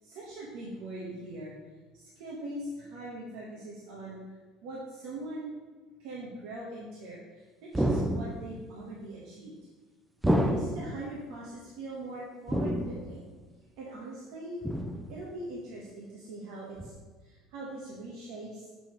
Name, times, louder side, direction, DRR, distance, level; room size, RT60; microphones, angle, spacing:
voice 1, 0.0-1.5 1.9-4.2 4.6-5.5 6.0-9.6 10.4-13.2 13.8-14.6 15.1-16.9 17.2-18.7, right 2 dB, 75° right, -5 dB, 1.4 m, -41 dB
sound 1, 7.7-8.6 10.2-11.0 12.5-13.2 14.6-15.2 16.8-16.9, equal, 5° right, 0.6 m, -29 dB
6.8 x 5.6 x 3.2 m, 1.3 s
supercardioid pair, 120°, 0 cm